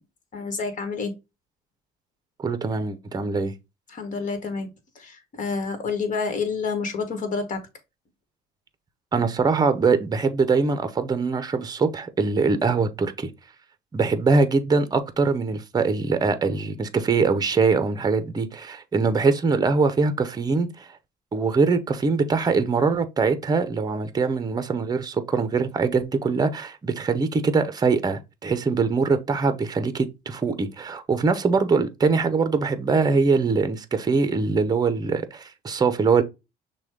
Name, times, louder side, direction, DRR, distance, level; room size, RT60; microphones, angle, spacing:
voice 1, 0.3-1.1 3.9-4.7 4.9-7.6, left 4 dB, 50° left, 1.4 m, -28 dB
voice 2, 2.4-3.5 9.1-13.3 13.9-20.9 21.3-36.2, right 4 dB, 25° right, 0.7 m, -23 dB
6.1 x 2.3 x 3.6 m
cardioid pair, 110°, 17 cm